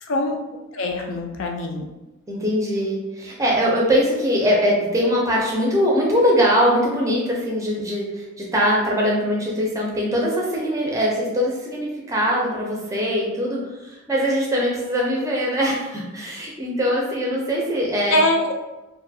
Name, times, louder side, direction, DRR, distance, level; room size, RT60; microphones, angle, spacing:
voice 1, 0.0-0.4 0.7-1.9 18.1-18.5, left 1 dB, 65° left, 3 dB, 0.3 m, -22 dB
voice 2, 2.3-18.2, equal, 15° right, -3 dB, 0.4 m, -22 dB
2.5 x 2.3 x 2.6 m, 1.1 s
head